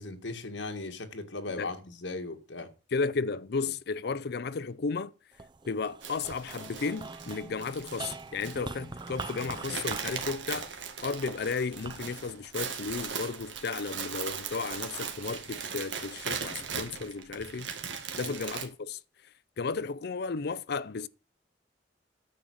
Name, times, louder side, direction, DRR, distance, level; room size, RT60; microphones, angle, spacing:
voice 1, 0.0-2.7 18.2-18.4, left 2 dB, 85° left, 1.8 m, -38 dB
voice 2, 2.9-5.1 5.7-10.7 11.0-17.7 18.1-19.0 19.6-21.1, left 4 dB, 60° left, 0.5 m, -34 dB
sound 1, 5.3-13.8 14.4-15.1, right 4 dB, 25° right, 0.5 m, -44 dB
sound 2, 6.0-18.7, right 6 dB, 85° right, 2.0 m, -39 dB
sound 3, 7.0-10.9, right 1 dB, 5° left, 1.1 m, -52 dB
10.0 x 7.4 x 6.4 m
head